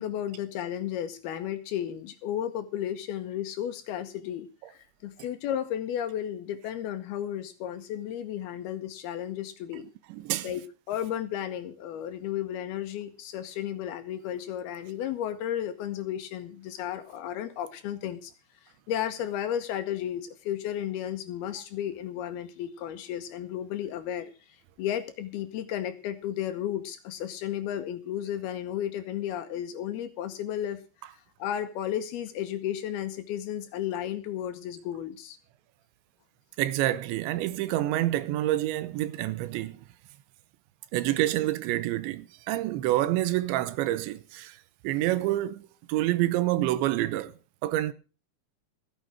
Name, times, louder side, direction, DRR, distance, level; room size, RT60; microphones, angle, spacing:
voice 1, 0.0-9.9 10.4-10.6 10.9-18.3 18.6-30.8 31.1-35.4, left 10 dB, 70° left, 2.7 m, -33 dB
voice 2, 10.1-10.5 36.6-39.8 40.9-44.6 44.8-47.3 47.6-47.9, right 15 dB, 90° right, 3.2 m, -27 dB
14.5 x 9.8 x 6.1 m
omnidirectional pair, 5.1 m